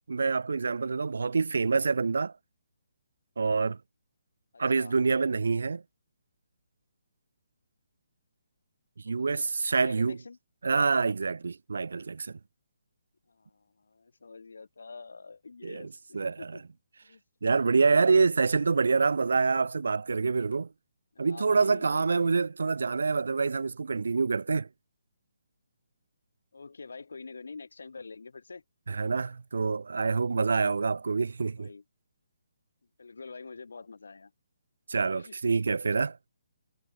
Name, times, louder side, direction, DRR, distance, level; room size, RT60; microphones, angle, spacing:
voice 1, 0.1-2.3 3.4-3.8 4.6-5.8 9.0-10.2 10.6-12.4 15.6-16.5 17.4-20.7 21.2-24.7 28.9-31.7 34.9-36.2, right 4 dB, 80° right, 0.6 m, -26 dB
voice 2, 4.5-4.9 9.0-9.4 9.8-10.4 13.3-16.6 17.0-17.2 21.1-22.4 26.5-28.6 31.4-31.8 33.0-34.3 35.1-35.6, left 4 dB, 90° left, 1.5 m, -46 dB
hypercardioid pair, 175°, 0 cm